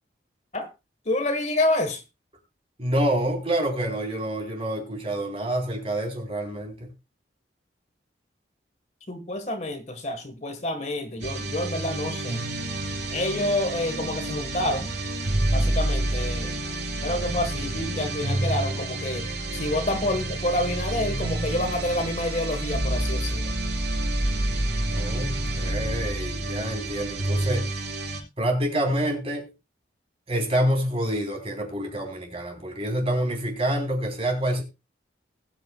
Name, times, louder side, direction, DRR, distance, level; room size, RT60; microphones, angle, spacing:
voice 1, 1.0-2.0 9.1-12.5 13.1-14.9 15.5-16.5 17.0-23.5, left 1 dB, 40° left, 1.6 m, -28 dB
voice 2, 2.8-6.9 24.9-27.8 28.4-29.5 30.3-34.6, right 1 dB, 30° right, 3.9 m, -27 dB
sound 1, 11.2-28.2, right 1 dB, 70° right, 4.0 m, -28 dB
20.5 x 9.2 x 2.4 m
head